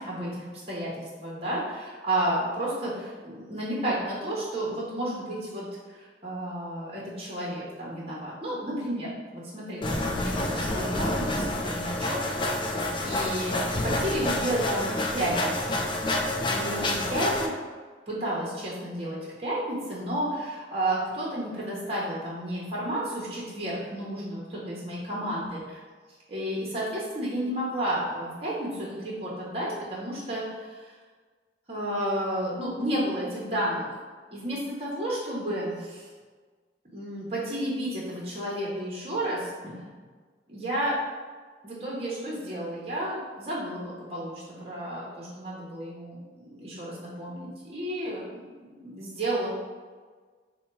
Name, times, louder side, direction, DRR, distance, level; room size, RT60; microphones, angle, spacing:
voice 1, 0.0-12.2 12.6-15.9 16.4-17.5 18.1-25.8 26.3-31.0 31.7-34.0 34.3-36.1 36.8-39.8 40.5-41.0 41.6-48.2 48.8-49.5, right 1 dB, 35° right, -5 dB, 0.9 m, -32 dB
sound 1, 9.8-17.5, left 1 dB, 25° left, 0.4 m, -28 dB
4.2 x 2.2 x 4.5 m, 1.5 s
head